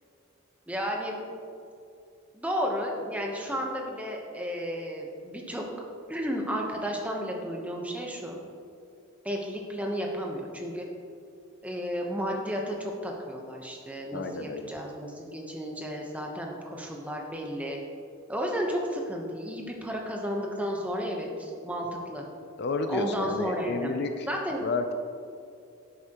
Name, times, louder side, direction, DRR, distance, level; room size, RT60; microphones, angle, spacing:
voice 1, 0.7-1.2 2.3-5.6 6.1-8.4 9.2-10.8 11.6-17.8 18.3-22.2 22.9-24.7, equal, 5° right, 0 dB, 0.9 m, -33 dB
voice 2, 14.1-14.7 22.6-24.3 24.6-24.9, left 3 dB, 50° left, 7 dB, 0.4 m, -31 dB
11.0 x 8.1 x 3.0 m, 2.5 s
head